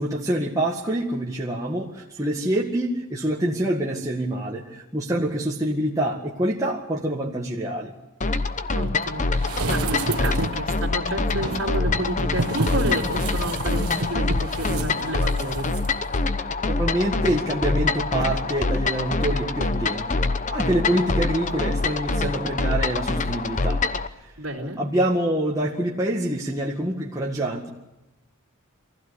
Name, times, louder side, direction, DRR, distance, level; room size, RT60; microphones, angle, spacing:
voice 1, 0.0-7.9 16.8-20.2 20.5-23.8 24.2-24.3 24.6-27.7, right 1 dB, 15° right, -3 dB, 1.9 m, -26 dB
sound 1, 8.2-24.1, left 3 dB, 35° left, 0.9 m, -25 dB
voice 2, 8.7-15.7 24.4-24.8, right 1 dB, 65° right, -4 dB, 3.3 m, -30 dB
sound 2, 9.4-10.7 11.3-15.9 16.2-16.3, right 3 dB, 85° right, 1.1 m, -31 dB
24.0 x 16.0 x 8.2 m, 0.96 s
head